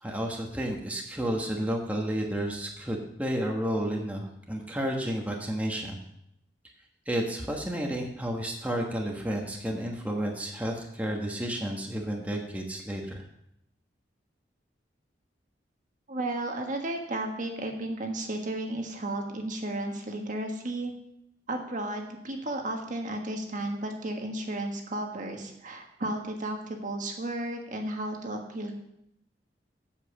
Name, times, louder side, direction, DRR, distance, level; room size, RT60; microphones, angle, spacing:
voice 1, 0.0-6.0 7.1-13.2, right 1 dB, 10° right, 0 dB, 1.3 m, -31 dB
voice 2, 16.1-20.9 21.5-28.8, right 1 dB, 45° right, 2 dB, 1.4 m, -33 dB
8.3 x 7.4 x 7.2 m, 0.77 s
head